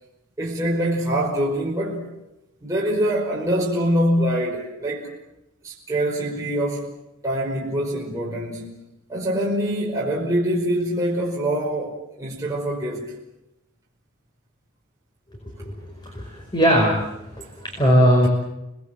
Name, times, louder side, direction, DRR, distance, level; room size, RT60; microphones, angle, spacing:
voice 1, 0.4-2.1 2.6-5.1 5.6-6.9 7.2-8.7 9.1-13.1, right 1 dB, 15° right, 5.3 m, -24 dB
voice 2, 16.0-17.0 17.3-18.3, equal, 20° left, 5.2 m, -19 dB
29.5 x 20.5 x 7.7 m
head